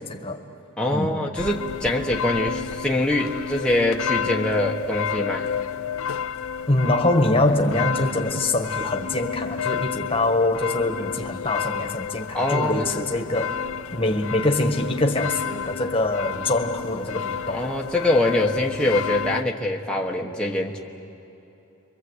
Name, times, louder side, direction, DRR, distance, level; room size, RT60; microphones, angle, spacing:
voice 1, 0.1-0.4 0.9-1.1 6.7-13.6 13.9-17.6, left 2 dB, 25° left, 4 dB, 1.5 m, -24 dB
voice 2, 0.8-5.5 12.3-12.9 17.5-20.8, left 1 dB, 5° left, -1 dB, 1.2 m, -24 dB
sound 1, 1.4-19.4, left 7 dB, 70° left, 0.5 m, -31 dB
29.5 x 23.5 x 8.2 m, 3.0 s
head